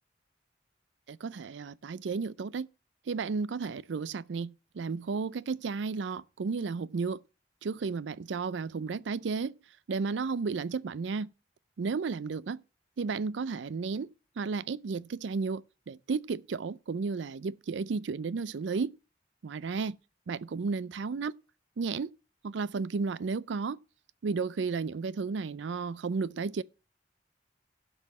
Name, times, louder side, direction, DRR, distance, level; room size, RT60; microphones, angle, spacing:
voice 1, 1.1-2.7 3.1-7.2 7.6-9.5 9.9-11.3 11.8-12.6 13.0-14.1 14.4-18.9 19.4-20.0 20.3-21.3 21.8-22.1 22.4-23.8 24.2-26.6, right 4 dB, 85° right, 0.4 m, -33 dB
11.5 x 5.6 x 5.9 m
head